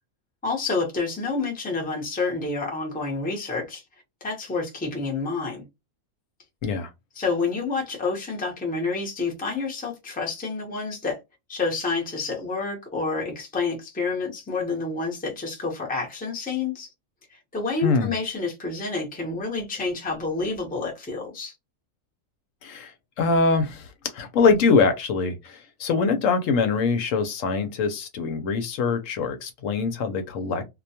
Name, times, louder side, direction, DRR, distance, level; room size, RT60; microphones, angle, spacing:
voice 1, 0.4-3.8 4.2-5.6 7.1-11.2 11.5-16.9 17.3-21.5, left 4 dB, 10° left, 0.6 m, -28 dB
voice 2, 17.8-18.1 22.6-30.6, left 4 dB, 75° left, 0.9 m, -23 dB
2.4 x 2.2 x 2.7 m
omnidirectional pair, 1.4 m